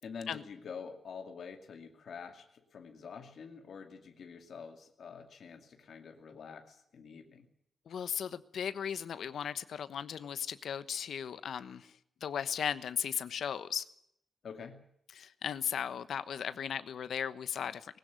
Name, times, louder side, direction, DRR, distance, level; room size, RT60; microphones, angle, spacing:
voice 1, 0.0-7.5 14.4-14.8, left 6 dB, 65° left, 4 dB, 2.4 m, -47 dB
voice 2, 7.9-11.9 12.2-13.8 15.1-18.0, left 8 dB, 80° left, 13 dB, 1.1 m, -36 dB
20.0 x 16.5 x 9.5 m, 0.73 s
wide cardioid pair, 160°, 0 cm